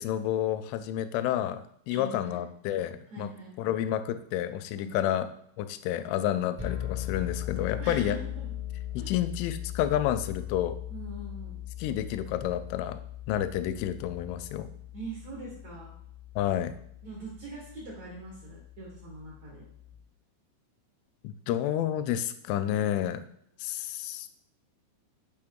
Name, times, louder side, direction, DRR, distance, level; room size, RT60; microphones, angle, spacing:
voice 1, 0.0-3.3 3.6-5.3 5.6-8.2 8.9-10.8 11.8-13.0 13.3-14.7 16.4-16.7 21.2-23.2 23.6-24.3, left 11 dB, 85° left, 11 dB, 2.9 m, -30 dB
voice 2, 1.9-2.4 3.1-3.8 4.7-5.2 7.8-8.5 9.0-9.1 10.9-11.6 14.9-15.9 17.0-19.6, right 2 dB, 90° right, -4 dB, 1.5 m, -43 dB
sound 1, 6.6-20.0, left 12 dB, 40° right, 0.6 m, -40 dB
7.6 x 4.8 x 3.6 m, 0.70 s
omnidirectional pair, 5.7 m